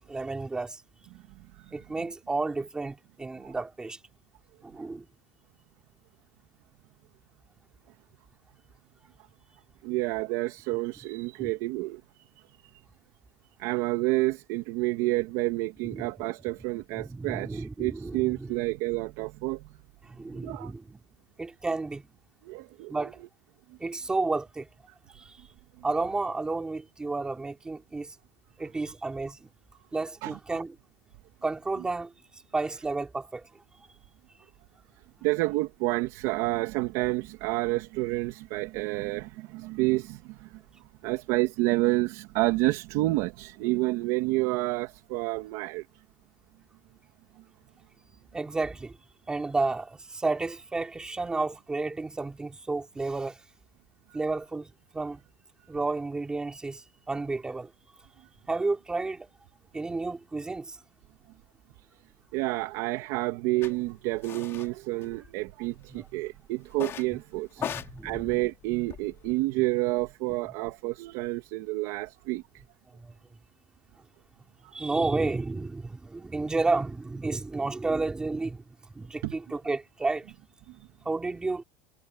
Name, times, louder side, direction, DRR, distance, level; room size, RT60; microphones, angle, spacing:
voice 1, 0.1-0.8 1.7-4.0 4.6-5.1 11.4-11.5 15.9-16.1 16.9-18.5 20.0-21.0 21.4-22.0 22.9-23.2 23.8-24.7 25.8-28.1 28.6-29.5 29.9-30.7 31.4-32.1 32.5-33.5 48.3-48.9 49.3-53.4 54.1-55.2 55.7-57.7 58.5-59.3 59.7-60.8 65.9-66.0 67.6-68.3 72.9-73.1 74.7-78.6 78.9-80.3 81.0-81.6, right 3 dB, 10° right, 3.3 m, -31 dB
voice 2, 9.8-12.2 13.6-19.6 20.4-20.7 22.4-22.9 30.2-30.6 35.2-40.6 41.0-45.9 62.3-67.6 68.0-72.4 74.6-74.7 79.2-79.3 80.7-80.8, right 20 dB, 50° right, 2.2 m, -29 dB
sound 1, 63.6-63.7 64.2-64.7 65.0-65.7 66.7-67.1 67.5-69.3, left 9 dB, 25° left, 3.0 m, -38 dB
supercardioid pair, 175°, 10 cm